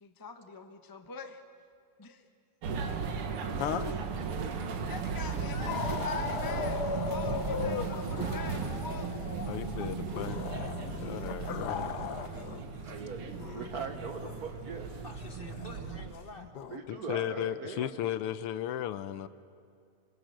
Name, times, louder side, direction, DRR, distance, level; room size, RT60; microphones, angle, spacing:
voice 1, 0.0-1.4 2.0-2.2 4.9-9.1, left 4 dB, 20° left, 7 dB, 0.5 m, -44 dB
sound 1, 2.6-16.1, right 5 dB, 85° right, 2.3 m, -36 dB
voice 2, 3.6-4.0 9.5-10.5 11.0-11.9 16.9-19.3, left 11 dB, 90° left, 14 dB, 1.7 m, -35 dB
voice 3, 4.3-4.6 12.9-15.1 16.7-17.9, right 5 dB, 50° right, 7 dB, 1.3 m, -41 dB
sound 2, 5.2-12.6 12.9-16.8, left 6 dB, 60° left, 1.3 m, -38 dB
voice 4, 15.0-16.5 17.3-17.6, left 3 dB, 40° left, 6 dB, 0.9 m, -48 dB
26.5 x 22.0 x 6.5 m, 2.3 s
omnidirectional pair, 2.4 m